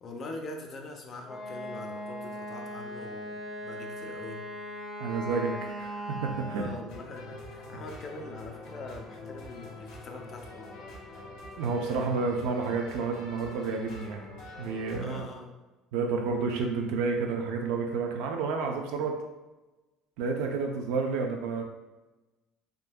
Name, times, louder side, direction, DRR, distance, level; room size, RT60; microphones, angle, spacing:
voice 1, 0.0-4.4 6.5-10.7 15.0-15.5, left 2 dB, 40° left, 2 dB, 0.5 m, -43 dB
Wind instrument woodwind instrument, 1.2-6.9, equal, 5° left, 0.7 m, -39 dB
voice 2, 5.0-6.7 11.6-14.3 14.6-15.2 15.9-19.2 20.2-21.6, right 4 dB, 80° right, 2 dB, 0.5 m, -30 dB
sound 1, 6.9-15.0, left 2 dB, 80° left, 1.0 m, -45 dB
3.6 x 2.7 x 2.2 m, 1.1 s
supercardioid pair, 105°, 0 cm